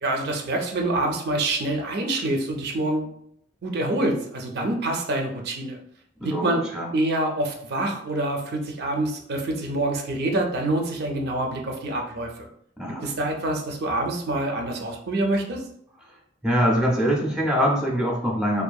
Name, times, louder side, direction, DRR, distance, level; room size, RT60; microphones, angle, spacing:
voice 1, 0.0-3.1 3.6-5.8 6.2-6.7 6.9-12.3 13.0-15.6, right 1 dB, 60° right, 2 dB, 0.4 m, -26 dB
voice 2, 6.2-6.9 12.8-13.1 16.4-18.6, equal, 5° right, -3 dB, 0.5 m, -23 dB
2.6 x 2.4 x 2.3 m, 0.68 s
head